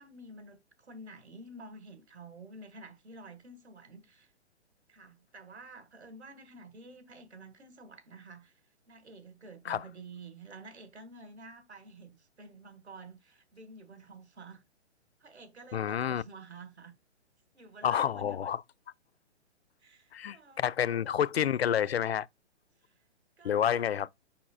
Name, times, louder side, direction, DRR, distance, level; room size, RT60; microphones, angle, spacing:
voice 1, 0.0-4.3 4.9-8.6 8.9-14.6 15.2-16.9 17.5-18.5 19.8-20.7 22.8-22.9 23.4-23.9, right 2 dB, 70° right, 1.8 m, -50 dB
voice 2, 15.7-16.2 17.8-18.6 20.1-22.3 23.4-24.1, left 9 dB, 65° left, 0.5 m, -29 dB
6.9 x 5.8 x 2.3 m
figure-of-eight pair, 125°, 34 cm